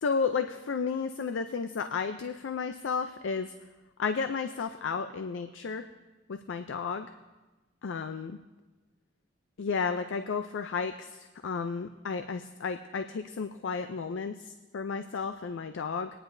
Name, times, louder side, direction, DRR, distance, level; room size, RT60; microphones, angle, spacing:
voice 1, 0.0-3.5 4.0-5.9 6.3-7.1 7.8-8.4 9.6-16.1, left 5 dB, 85° left, 9 dB, 0.4 m, -32 dB
20.0 x 10.0 x 2.6 m, 1.1 s
head